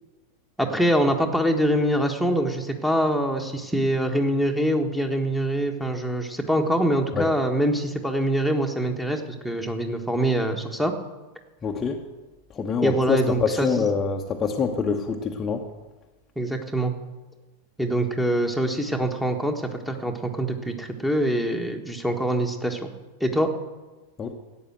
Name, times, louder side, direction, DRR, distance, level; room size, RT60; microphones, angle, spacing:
voice 1, 0.6-10.9 12.8-13.7 16.4-16.9 17.8-22.9 23.2-23.5, right 1 dB, ahead, 4 dB, 1.5 m, -24 dB
voice 2, 11.6-12.0 12.5-15.6 24.2-24.3, left 5 dB, 20° left, 2 dB, 1.0 m, -25 dB
12.5 x 8.9 x 7.8 m, 1.2 s
figure-of-eight pair, 90°, 0 cm